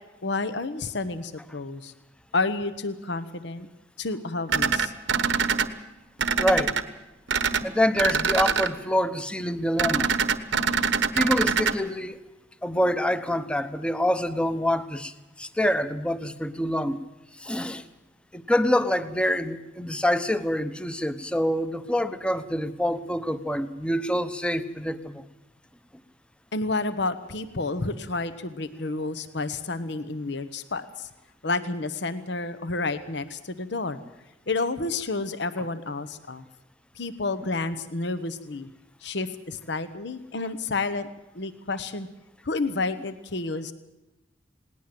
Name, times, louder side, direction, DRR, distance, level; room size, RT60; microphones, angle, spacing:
voice 1, 0.2-1.9 2.3-3.7 4.0-4.9 26.5-31.1 31.4-34.0 34.5-36.4 36.9-38.7 39.0-41.1 41.3-42.1 42.4-43.7, left 3 dB, 65° left, 12 dB, 1.1 m, -30 dB
sound 1, 4.5-5.7 6.2-6.8 7.3-7.6 8.0-8.7 9.8-11.7, right 6 dB, 75° right, 1.2 m, -24 dB
voice 2, 6.4-6.8 7.6-10.1 11.1-12.2 12.6-17.0 17.4-17.8 18.3-25.2, equal, 5° left, 12 dB, 0.9 m, -26 dB
19.5 x 19.0 x 7.7 m, 0.98 s
head